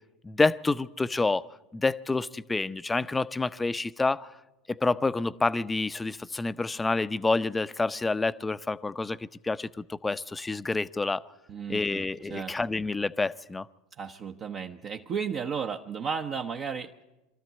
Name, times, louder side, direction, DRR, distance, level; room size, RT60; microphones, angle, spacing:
voice 1, 0.2-1.4 1.7-4.3 4.7-11.2 11.7-13.7, left 3 dB, 15° left, 0.6 m, -28 dB
voice 2, 11.5-12.5 14.0-16.9, right 6 dB, 45° right, 0.9 m, -34 dB
22.5 x 13.5 x 9.3 m
hypercardioid pair, 85°, 0 cm